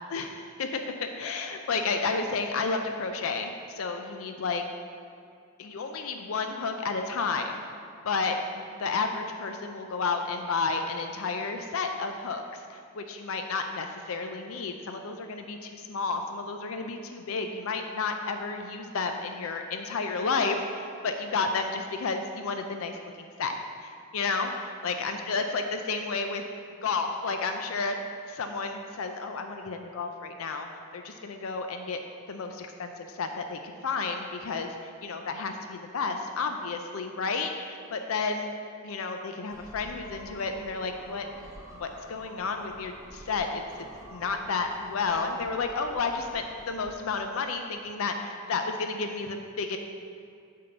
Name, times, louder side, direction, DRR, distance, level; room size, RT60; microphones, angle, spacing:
voice 1, 0.1-4.6 5.6-7.6 8.0-23.5 23.8-26.4 26.8-28.0 28.3-30.7 30.9-32.0 32.3-38.5 38.8-41.3 41.8-43.6 44.1-49.8, left 4 dB, 70° left, 5 dB, 0.5 m, -31 dB
sound 1, 39.5-46.9, right 1 dB, 15° right, 1.0 m, -48 dB
8.7 x 3.7 x 6.7 m, 2.3 s
head